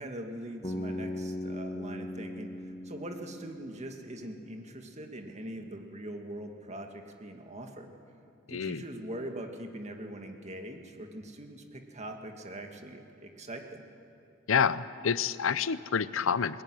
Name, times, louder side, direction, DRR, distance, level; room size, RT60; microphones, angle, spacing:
voice 1, 0.0-7.9 8.5-13.9, right 1 dB, 35° right, 4 dB, 2.0 m, -42 dB
Bass guitar, 0.6-4.7, left 1 dB, 30° left, 1.8 m, -39 dB
voice 2, 8.5-8.8 14.5-16.6, left 6 dB, 75° left, 16 dB, 0.6 m, -28 dB
21.5 x 20.0 x 9.9 m, 2.7 s
head